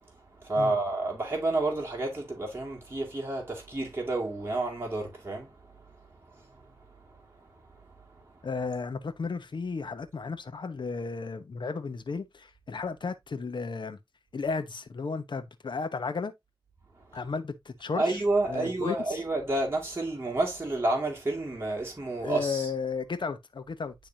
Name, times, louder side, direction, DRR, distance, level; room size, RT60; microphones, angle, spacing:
voice 1, 0.4-5.5 6.3-6.4 18.0-22.7, right 2 dB, 30° right, 2.5 m, -29 dB
voice 2, 8.4-14.0 14.3-16.3 17.1-18.2 18.5-19.0 22.2-23.9, left 4 dB, 75° left, 1.0 m, -34 dB
10.5 x 3.5 x 2.8 m
wide cardioid pair, 65°, 8 cm